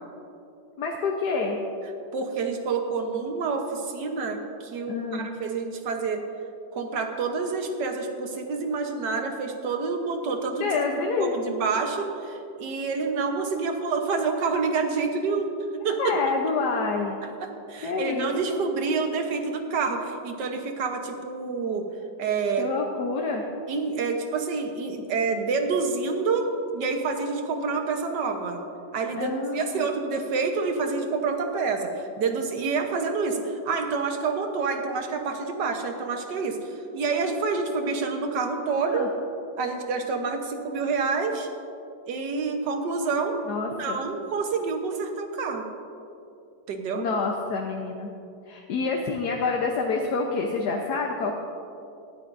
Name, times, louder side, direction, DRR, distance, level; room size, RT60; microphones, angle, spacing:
voice 1, 0.8-1.6 4.9-5.3 10.5-11.4 16.0-17.2 17.8-18.6 22.6-23.4 29.2-29.9 38.9-39.1 43.5-44.0 46.9-48.1 48.5-51.4, left 4 dB, 70° left, 1 dB, 1.4 m, -27 dB
voice 2, 2.1-6.2 6.7-10.7 11.0-15.5 15.8-16.1 17.2-21.9 22.2-22.7 23.7-26.5 26.7-28.6 28.9-39.1 39.6-41.5 42.1-43.4 43.8-45.7 46.7-47.1, right 4 dB, 80° right, 4 dB, 1.7 m, -28 dB
18.5 x 13.0 x 2.6 m, 2.7 s
omnidirectional pair, 1.8 m